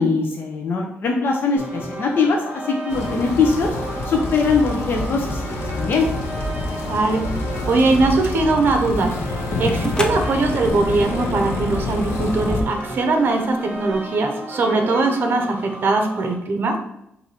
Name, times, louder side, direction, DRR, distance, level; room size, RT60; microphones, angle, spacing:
voice 1, 0.0-2.4 2.7-3.7 4.1-6.1, left 4 dB, 55° left, 0 dB, 0.7 m, -21 dB
sound 1, 1.6-16.3, right 1 dB, 20° right, 1.6 m, -34 dB
sound 2, 2.9-12.6, left 2 dB, 85° left, 0.8 m, -27 dB
voice 2, 6.9-7.2 7.7-16.8, right 3 dB, 50° right, 4 dB, 0.8 m, -20 dB
sound 3, 8.8-14.1, left 2 dB, 20° left, 0.4 m, -35 dB
4.6 x 2.7 x 4.2 m, 0.79 s
wide cardioid pair, 140°, 4 cm